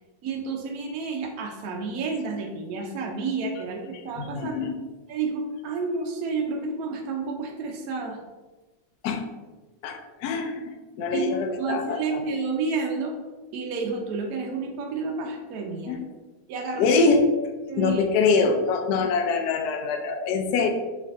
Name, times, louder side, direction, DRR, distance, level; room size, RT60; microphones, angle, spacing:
voice 1, 0.2-4.6 5.1-8.2 11.1-11.3 11.6-13.2 13.5-16.0 16.5-17.0 17.7-18.0 19.0-19.1, right 4 dB, 70° right, 1 dB, 0.9 m, -30 dB
voice 2, 4.2-4.8 9.0-9.2 9.8-10.7 11.0-12.2 15.9-16.0 16.8-17.3 17.8-20.7, left 4 dB, 70° left, 4 dB, 1.0 m, -24 dB
4.3 x 3.3 x 3.6 m, 1.2 s
omnidirectional pair, 2.1 m